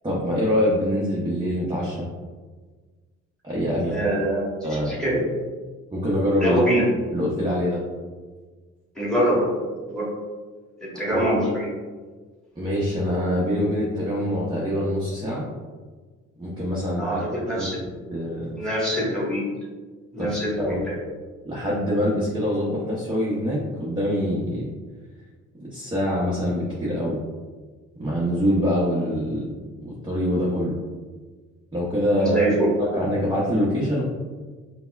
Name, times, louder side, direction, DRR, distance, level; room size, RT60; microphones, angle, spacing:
voice 1, 0.0-2.0 3.4-3.9 4.6-5.1 5.9-6.6 7.1-7.8 11.1-11.3 12.6-15.4 16.4-17.2 17.5-18.6 20.2-20.8 21.5-24.7 25.5-27.2 28.0-30.7 31.7-32.4 32.8-34.0, equal, 15° right, -6 dB, 0.7 m, -25 dB
voice 2, 3.9-5.2 6.4-6.9 8.9-9.6 9.9-10.1 10.8-11.7 17.0-17.8 18.6-19.5 20.1-21.0 32.2-32.7, right 1 dB, ahead, -6 dB, 1.4 m, -24 dB
5.2 x 2.1 x 2.3 m, 1.4 s
cardioid pair, 90°, 30 cm